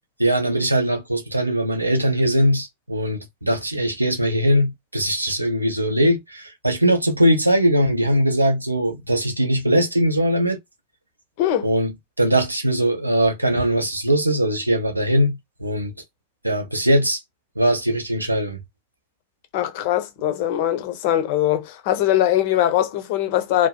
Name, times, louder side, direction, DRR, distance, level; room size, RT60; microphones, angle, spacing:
voice 1, 0.2-10.6 11.6-15.9 16.4-17.2 17.6-18.6, equal, 85° right, 0.6 m, -20 dB
voice 2, 19.5-23.7, left 12 dB, 50° left, 0.6 m, -21 dB
2.6 x 2.1 x 2.2 m
figure-of-eight pair, 90°, 0 cm